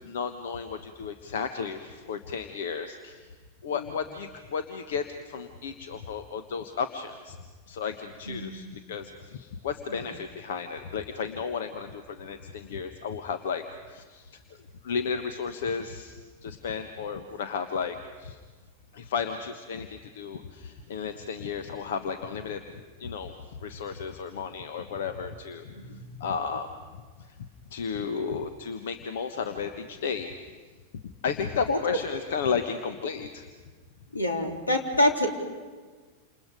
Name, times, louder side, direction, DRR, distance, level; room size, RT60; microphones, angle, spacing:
voice 1, 0.0-3.3 3.6-7.4 7.7-14.6 14.8-16.2 16.4-18.4 18.9-22.6 23.0-25.7 26.2-26.7 27.7-30.3 31.2-33.5, left 6 dB, 60° left, 8 dB, 1.3 m, -33 dB
voice 2, 8.3-8.6 9.9-10.0 25.8-26.1 31.7-31.8 34.1-35.3, left 1 dB, 80° left, 3 dB, 3.4 m, -26 dB
29.0 x 28.0 x 5.2 m, 1.4 s
figure-of-eight pair, 90°, 0 cm